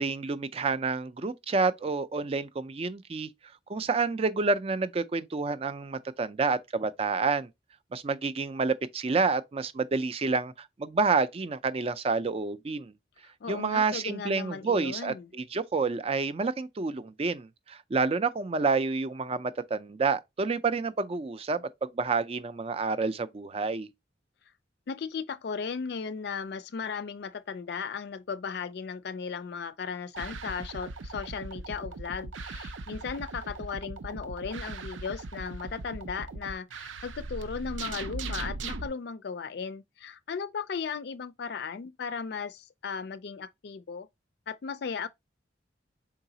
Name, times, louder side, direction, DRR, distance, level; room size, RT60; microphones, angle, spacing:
voice 1, 0.0-3.3 3.7-7.5 7.9-12.9 13.5-23.9, right 4 dB, 30° right, 0.4 m, -29 dB
voice 2, 13.4-15.3 24.9-44.1 44.5-45.1, left 5 dB, 60° left, 0.4 m, -36 dB
sound 1, 30.1-38.9, right 3 dB, 90° right, 0.5 m, -39 dB
4.7 x 3.8 x 2.7 m
head